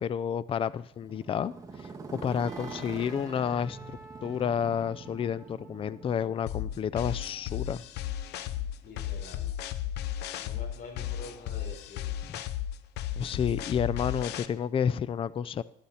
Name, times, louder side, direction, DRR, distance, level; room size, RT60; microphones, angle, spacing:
voice 1, 0.0-7.8 10.3-10.5 12.3-12.4 13.2-15.6, left 8 dB, 30° left, 17 dB, 0.4 m, -31 dB
Motorcycle, 0.9-9.0, right 4 dB, 20° right, 1.9 m, -45 dB
Wind instrument woodwind instrument, 2.4-6.5, right 1 dB, 5° left, 5.6 m, -51 dB
sound 1, 6.5-14.5, left 11 dB, 80° left, 0.8 m, -34 dB
voice 2, 8.8-9.5 10.4-12.2, left 3 dB, 60° left, 0 dB, 4.6 m, -46 dB
13.0 x 11.5 x 4.3 m, 0.70 s
cardioid pair, 110°, 17 cm